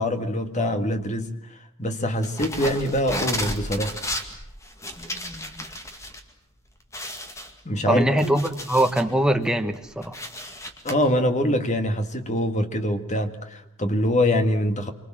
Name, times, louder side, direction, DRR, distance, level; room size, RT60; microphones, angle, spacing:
voice 1, 0.0-4.0 7.7-8.1 10.8-14.9, left 1 dB, 35° left, 2.0 m, -24 dB
sound 1, 2.2-6.2 6.5-6.6 6.9-9.1 9.6-10.9, left 1 dB, 15° left, 2.2 m, -33 dB
voice 2, 7.9-10.2, right 1 dB, 5° right, 1.3 m, -22 dB
27.0 x 25.0 x 7.6 m
head